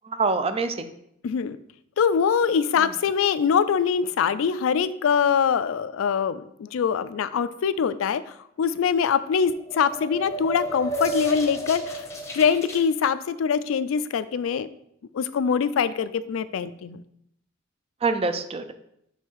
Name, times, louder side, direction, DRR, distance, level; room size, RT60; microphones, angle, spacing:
voice 1, 0.0-0.9 2.8-2.9 18.0-18.7, right 4 dB, 30° right, 9 dB, 0.4 m, -25 dB
voice 2, 1.2-1.6 2.0-8.2 8.6-12.0 12.3-14.7 15.1-17.0, left 6 dB, 80° left, 15 dB, 0.3 m, -23 dB
sound 1, 9.5-12.8, right 1 dB, 15° left, 0.8 m, -32 dB
6.4 x 3.4 x 4.6 m, 0.75 s
head